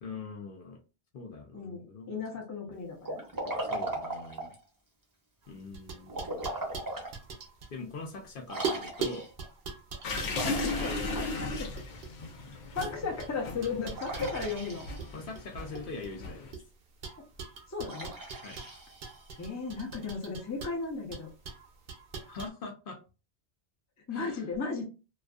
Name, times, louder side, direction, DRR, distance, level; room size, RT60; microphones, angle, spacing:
voice 1, 0.0-0.8 1.1-2.2 2.6-2.7 3.7-4.5 5.5-6.4 7.7-9.3 10.8-11.3 15.1-16.6 18.4-18.6 22.3-23.0 24.1-24.5, left 4 dB, 60° left, 3 dB, 0.7 m, -42 dB
voice 2, 2.1-3.2 10.5-11.2 11.5-11.7 12.7-14.9 17.7-18.1 19.4-21.3 24.1-24.8, left 4 dB, 25° left, 1 dB, 0.4 m, -35 dB
Liquid, 3.0-4.6 6.1-7.1 7.6-7.7 8.5-9.4 10.3-11.9 13.9-15.3 17.8-19.5, right 2 dB, 25° right, 0.6 m, -38 dB
sound 1, 5.4-8.3 8.6-12.3 12.8-15.1 15.3-16.6 17.0-22.5, right 5 dB, 60° right, 0.7 m, -41 dB
sound 2, 10.0-16.5, left 3 dB, 85° left, 0.9 m, -37 dB
2.5 x 2.4 x 2.3 m, 0.32 s
omnidirectional pair, 1.1 m